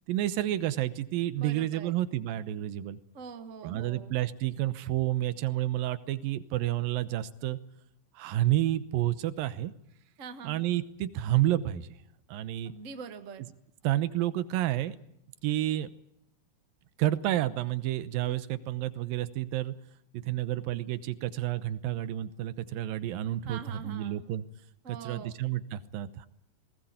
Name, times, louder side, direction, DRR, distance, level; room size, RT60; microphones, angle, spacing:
voice 1, 0.1-3.0 3.6-7.6 8.2-9.7 10.4-11.9 12.3-12.7 13.8-15.0 15.4-15.9 17.0-19.7 20.2-24.4 24.9-26.3, right 14 dB, 80° right, 14 dB, 2.7 m, -30 dB
voice 2, 1.4-1.9 3.1-4.2 10.2-10.6 12.6-13.4 23.5-24.2 24.8-25.3, right 6 dB, 65° right, 8 dB, 0.7 m, -44 dB
20.5 x 18.5 x 8.8 m, 0.76 s
omnidirectional pair, 4.0 m